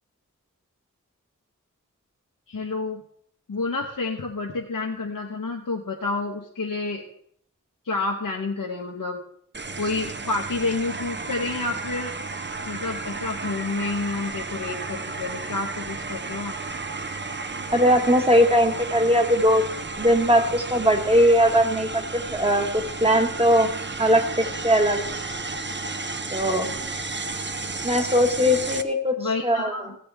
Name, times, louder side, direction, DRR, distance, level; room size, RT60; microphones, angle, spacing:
voice 1, 2.5-3.0 3.5-7.0 7.8-9.2 9.8-12.1 12.7-16.6 29.2-30.0, left 3 dB, 85° left, -1 dB, 1.0 m, -29 dB
sound 1, 9.5-28.8, right 3 dB, 35° right, 0.7 m, -33 dB
voice 2, 17.7-19.6 20.0-23.7 24.0-25.0 26.3-26.7 27.8-29.7, equal, 20° right, 4 dB, 1.5 m, -20 dB
16.0 x 8.5 x 3.5 m, 0.68 s
wide cardioid pair, 60°, 32 cm